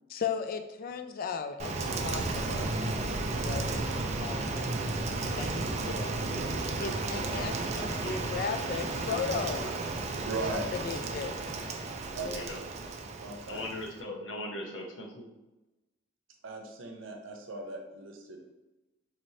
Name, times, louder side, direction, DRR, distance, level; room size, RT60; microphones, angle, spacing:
voice 1, 0.1-6.1 6.8-9.7 10.4-11.5, left 5 dB, 50° left, 8 dB, 0.3 m, -37 dB
Rain, 1.6-14.0, right 3 dB, 35° right, 0.4 m, -33 dB
voice 2, 10.3-10.7 12.2-12.3 13.2-13.6 16.4-18.5, right 3 dB, 90° right, 3 dB, 0.6 m, -38 dB
voice 3, 12.1-12.6 13.4-15.3, left 1 dB, 70° left, 1 dB, 0.8 m, -39 dB
4.1 x 3.1 x 2.7 m, 1.0 s
head